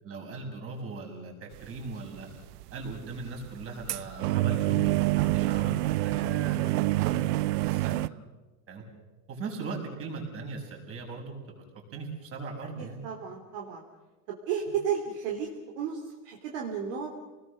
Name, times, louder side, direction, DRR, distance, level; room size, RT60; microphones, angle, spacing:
voice 1, 0.0-2.3 2.7-8.1 8.7-8.8 9.3-11.6 11.9-13.0, right 3 dB, 25° right, 1 dB, 6.7 m, -39 dB
sound 1, 1.5-2.0 2.3-8.1, right 18 dB, 65° right, 0.7 m, -27 dB
voice 2, 12.8-13.8 14.5-15.5 15.8-17.1, right 7 dB, 50° right, 1 dB, 3.6 m, -33 dB
29.0 x 20.0 x 6.8 m, 1.1 s
supercardioid pair, 140°, 50 cm